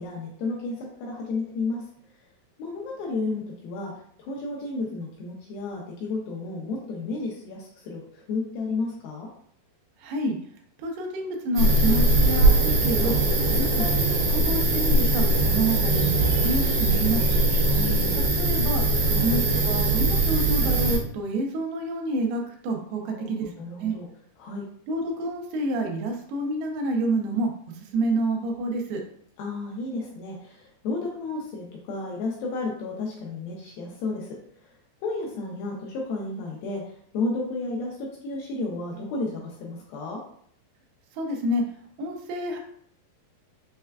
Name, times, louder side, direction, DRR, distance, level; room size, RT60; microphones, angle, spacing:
voice 1, 0.0-1.8 2.6-3.9 4.2-9.3 13.8-13.9 17.6-18.3 19.0-19.2 23.0-24.1 24.4-24.7 29.4-34.4 35.0-36.8 37.1-40.2, left 3 dB, 85° left, -2 dB, 2.1 m, -32 dB
voice 2, 10.0-10.4 10.8-13.2 13.5-17.4 18.1-18.8 19.2-23.5 23.8-24.0 24.9-27.5 27.9-29.0 41.2-41.6 42.0-42.6, right 2 dB, 80° right, 2 dB, 2.4 m, -28 dB
sound 1, 11.5-21.0, right 2 dB, 65° right, 1.8 m, -21 dB
6.3 x 2.2 x 2.3 m, 0.63 s
omnidirectional pair, 4.9 m